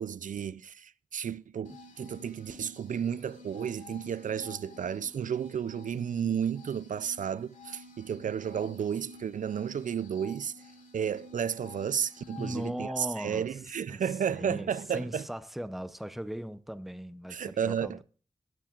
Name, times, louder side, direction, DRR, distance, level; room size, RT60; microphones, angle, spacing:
voice 1, 0.0-10.5 10.9-15.2 17.3-18.0, right 8 dB, 80° right, 0.4 m, -32 dB
sound 1, 1.6-12.7, left 3 dB, 75° left, 2.5 m, -51 dB
voice 2, 12.4-13.6 13.9-18.0, equal, ahead, 0.6 m, -38 dB
18.0 x 7.3 x 2.4 m
wide cardioid pair, 115°, 13 cm